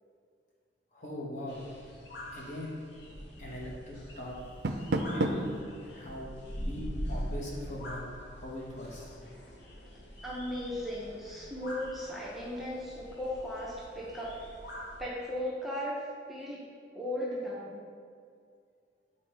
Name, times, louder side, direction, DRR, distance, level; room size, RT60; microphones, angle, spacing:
voice 1, 0.9-1.6 2.3-2.8 3.4-4.4 5.1-5.4 5.8-6.3 6.6-9.2, left 1 dB, 40° left, -3 dB, 1.2 m, -41 dB
sound 1, 1.5-15.0, equal, 70° left, 1.1 m, -43 dB
Door, 4.4-5.6, right 2 dB, 65° right, 0.5 m, -31 dB
voice 2, 10.2-14.4 15.0-16.0 16.3-16.6 16.9-17.8, left 1 dB, ahead, -7 dB, 0.8 m, -36 dB
8.2 x 4.3 x 3.3 m, 2.2 s
head